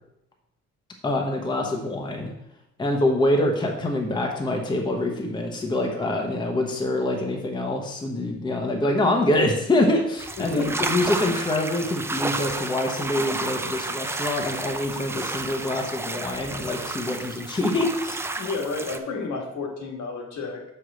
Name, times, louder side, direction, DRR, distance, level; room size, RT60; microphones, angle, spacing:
voice 1, 1.0-2.3 2.8-18.2, left 1 dB, 15° left, 1 dB, 0.8 m, -25 dB
sound 1, 10.2-19.0, right 2 dB, 10° right, 0.3 m, -31 dB
voice 2, 10.4-10.8 18.4-20.6, left 3 dB, 70° left, 1 dB, 1.7 m, -31 dB
5.4 x 4.8 x 6.2 m, 0.81 s
cardioid pair, 160°, 29 cm